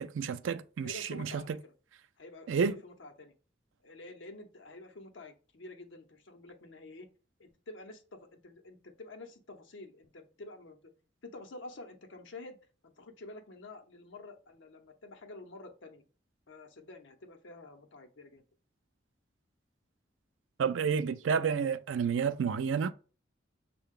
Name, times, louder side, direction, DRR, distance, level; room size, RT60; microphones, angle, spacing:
voice 1, 0.0-1.4 2.5-2.8 20.6-22.9, right 6 dB, 85° right, 0.4 m, -30 dB
voice 2, 0.8-1.7 2.2-3.3 3.8-7.1 7.4-10.9 11.2-16.0 16.5-18.4, left 2 dB, 80° left, 0.8 m, -49 dB
6.4 x 2.2 x 3.6 m
head